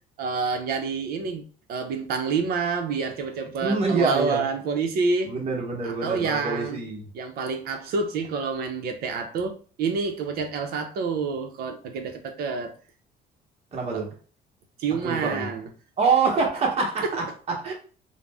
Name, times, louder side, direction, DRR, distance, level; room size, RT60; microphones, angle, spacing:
voice 1, 0.2-5.3 5.8-6.8 7.1-12.7 13.9-14.0 14.8-15.7, right 5 dB, 65° right, 0.6 m, -28 dB
voice 2, 3.6-4.5 5.2-7.1 13.7-14.1 15.0-15.5 16.0-17.7, right 4 dB, 40° right, 0.9 m, -25 dB
2.4 x 2.1 x 3.3 m
cardioid pair, 110°, 17 cm